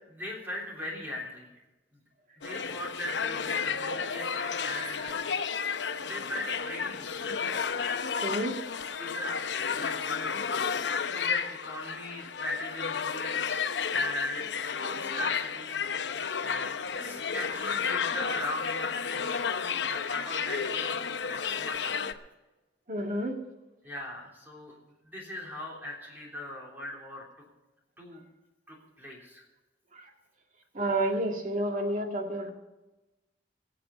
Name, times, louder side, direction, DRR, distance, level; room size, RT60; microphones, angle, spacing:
voice 1, 0.1-1.5 2.4-5.2 6.0-7.7 8.9-9.4 9.7-10.3 10.7-10.8 11.1-15.8 16.4-19.5 19.9-22.2 23.8-24.7 25.0-27.2 28.0-28.2 28.7-29.4, left 1 dB, 10° right, -3 dB, 3.3 m, -39 dB
sound 1, 2.4-22.1, left 6 dB, 85° left, 0.7 m, -32 dB
voice 2, 8.2-8.5 22.9-23.4 30.7-32.5, right 1 dB, 45° right, 3 dB, 2.0 m, -29 dB
21.5 x 7.7 x 5.3 m, 1.1 s
head